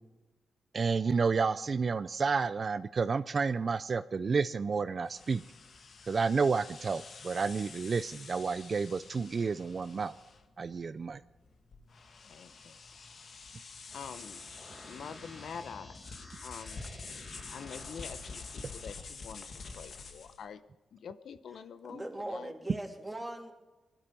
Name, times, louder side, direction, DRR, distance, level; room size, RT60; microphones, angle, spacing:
voice 1, 0.7-5.4 6.1-10.1 10.6-11.2, right 5 dB, 45° right, 13 dB, 0.5 m, -30 dB
sound 1, 5.1-20.4, left 4 dB, 60° left, 1.7 m, -48 dB
voice 2, 12.2-12.8 13.9-14.4 14.9-16.0 16.4-16.9 17.5-20.6 20.9-22.5, left 7 dB, 75° left, 12 dB, 0.8 m, -46 dB
sound 2, 13.9-18.9, left 1 dB, 40° left, 4.1 m, -51 dB
voice 3, 21.9-23.5, right 1 dB, 10° right, 3 dB, 2.9 m, -40 dB
21.0 x 12.0 x 5.4 m, 1.1 s
cardioid pair, 85°, 0 cm